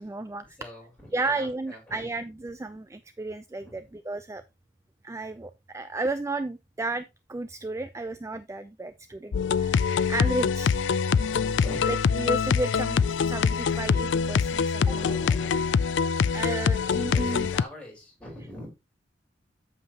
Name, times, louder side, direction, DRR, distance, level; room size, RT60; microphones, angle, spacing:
voice 1, 0.0-0.6 1.1-4.4 5.0-10.8 11.9-15.2 16.3-17.5, right 2 dB, 15° right, 0.3 m, -33 dB
voice 2, 0.6-2.1 3.6-3.8 11.4-11.8 14.8-15.8 16.8-18.7, equal, 5° left, 4.2 m, -43 dB
sound 1, 9.3-17.6, left 6 dB, 85° left, 0.4 m, -24 dB
8.6 x 7.3 x 2.9 m
head